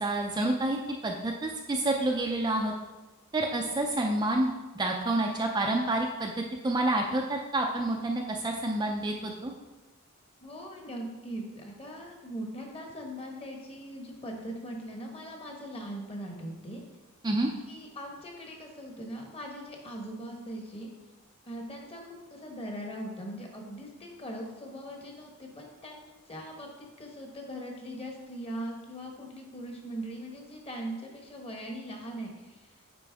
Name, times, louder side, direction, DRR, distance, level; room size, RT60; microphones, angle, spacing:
voice 1, 0.0-2.7 3.3-9.5 17.2-17.5, right 2 dB, 20° right, 1 dB, 0.4 m, -29 dB
voice 2, 10.4-16.8 17.7-20.9 21.4-32.8, right 1 dB, 25° left, 1 dB, 1.2 m, -40 dB
8.3 x 5.2 x 3.5 m, 1.1 s
head